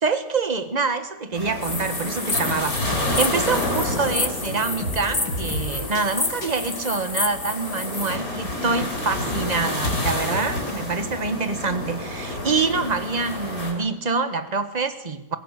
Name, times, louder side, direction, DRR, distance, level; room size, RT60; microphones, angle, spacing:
voice 1, 0.0-15.4, right 4 dB, 25° right, 10 dB, 1.4 m, -26 dB
sound 1, 1.3-13.7, left 1 dB, 65° left, 5.9 m, -29 dB
sound 2, 1.6-8.2, left 3 dB, 20° left, 1.2 m, -30 dB
sound 3, 4.2-10.7, left 1 dB, 90° left, 4.2 m, -36 dB
22.5 x 16.0 x 8.2 m, 0.91 s
omnidirectional pair, 1.7 m